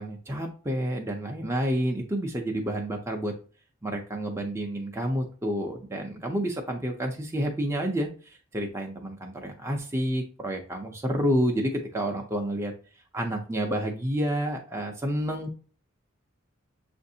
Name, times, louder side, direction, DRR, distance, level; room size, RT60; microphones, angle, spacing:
voice 1, 0.0-3.3 3.8-12.7 13.1-15.6, equal, 15° right, 1 dB, 0.5 m, -29 dB
7.1 x 2.6 x 2.7 m, 0.39 s
head